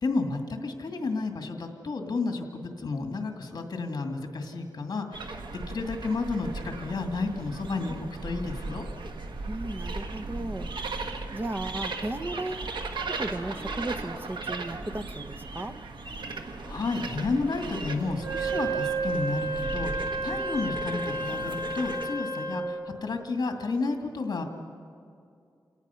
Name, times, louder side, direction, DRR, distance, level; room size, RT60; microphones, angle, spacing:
voice 1, 0.0-5.4 5.7-8.8 16.7-24.4, left 3 dB, 60° left, 4 dB, 2.2 m, -31 dB
sound 1, 5.1-22.1, right 3 dB, 85° right, 1.2 m, -37 dB
voice 2, 9.5-10.7 11.3-12.7 13.1-15.8, right 1 dB, 25° right, 9 dB, 0.8 m, -35 dB
Wind instrument woodwind instrument, 18.2-22.7, right 2 dB, 55° right, 5.5 m, -31 dB
28.5 x 18.0 x 5.7 m, 2.5 s
wide cardioid pair, 130°, 8 cm